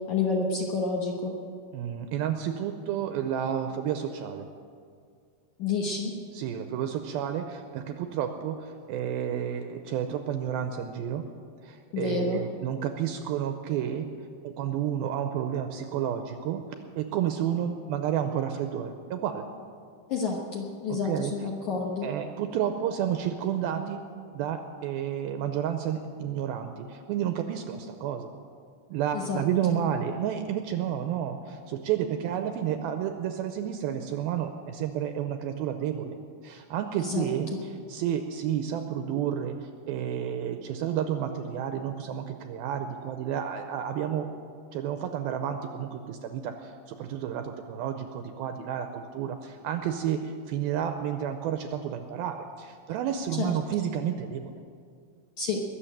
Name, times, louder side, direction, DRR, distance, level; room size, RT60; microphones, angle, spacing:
voice 1, 0.1-1.3 5.6-6.1 11.9-12.4 20.1-22.1 29.1-29.4 29.7-29.8 37.0-37.3 53.4-53.5 55.4-55.6, left 4 dB, 65° left, -1 dB, 1.9 m, -29 dB
voice 2, 1.7-4.5 6.3-11.3 11.6-14.1 14.4-16.6 17.0-19.5 21.0-21.3 22.0-24.0 24.3-28.3 28.9-36.2 36.4-44.3 44.7-54.5, right 9 dB, 85° right, 7 dB, 2.2 m, -31 dB
21.5 x 7.1 x 8.9 m, 2.2 s
omnidirectional pair, 4.9 m